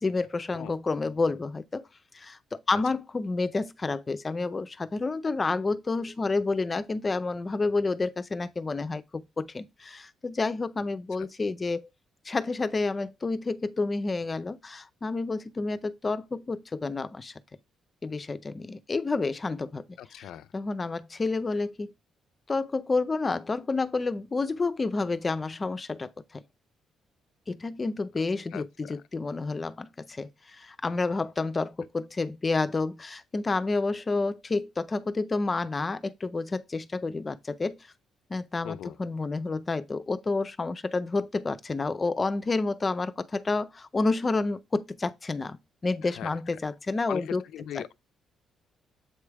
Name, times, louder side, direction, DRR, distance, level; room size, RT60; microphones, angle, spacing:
voice 1, 0.0-1.9 2.1-11.9 12.2-17.3 18.0-20.3 20.5-21.9 22.5-26.4 27.5-37.8 38.3-47.4 47.8-47.9, left 3 dB, 30° left, 0.6 m, -29 dB
voice 2, 20.0-20.5 28.5-29.0 38.6-39.0 46.0-46.3 47.1-47.9, left 11 dB, 80° left, 0.5 m, -39 dB
7.9 x 3.3 x 4.7 m
cardioid pair, 90°, 0 cm